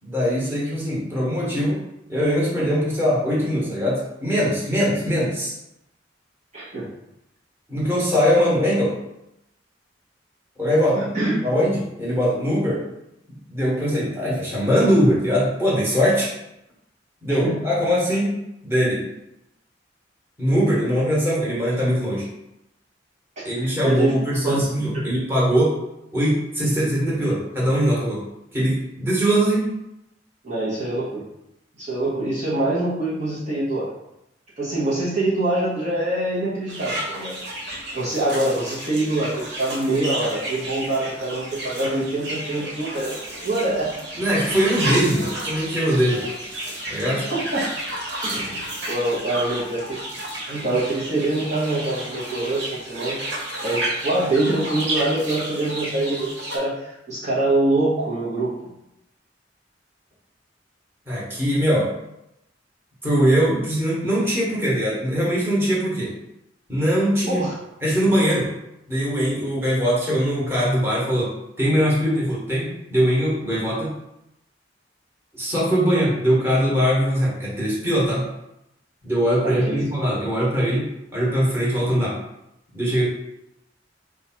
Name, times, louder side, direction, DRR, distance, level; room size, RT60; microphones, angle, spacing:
voice 1, 0.0-1.8 2.1-5.5 7.7-8.9 10.6-11.1 11.4-12.8 13.3-16.3 17.2-18.4 18.6-19.0 20.4-22.2 23.4-25.7 26.1-28.2 28.5-29.7 44.2-46.2 46.9-47.2 61.1-61.9 63.0-66.1 66.7-67.5 67.8-68.5 68.9-71.3 71.6-73.9 75.3-78.2 79.0-80.9 81.1-82.1 82.7-83.0, equal, 15° right, -7 dB, 1.4 m, -21 dB
voice 2, 6.5-6.9 10.9-11.3 17.3-17.6 23.4-24.9 30.4-31.2 31.8-33.9 34.6-37.3 37.9-43.1 43.4-43.9 44.5-44.6 47.1-47.6 48.2-50.0 50.5-53.2 53.6-58.5 67.3-67.5 79.4-79.8, right 2 dB, 40° right, -8 dB, 1.1 m, -24 dB
sound 1, 36.7-56.6, right 1 dB, 65° right, 1.5 m, -31 dB
4.7 x 2.4 x 4.5 m, 0.86 s
head